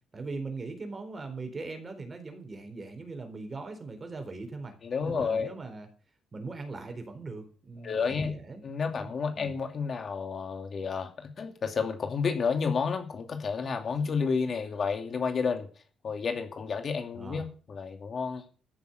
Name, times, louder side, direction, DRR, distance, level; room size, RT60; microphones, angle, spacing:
voice 1, 0.1-4.7 5.0-5.9 6.3-8.6 8.9-9.6 17.2-17.5, right 3 dB, 30° right, 6 dB, 4.1 m, -40 dB
voice 2, 4.8-5.5 7.8-8.3 8.6-15.7 16.0-18.4, left 5 dB, 45° left, 5 dB, 2.5 m, -31 dB
14.5 x 7.2 x 8.0 m, 0.40 s
cardioid pair, 105°, 0 cm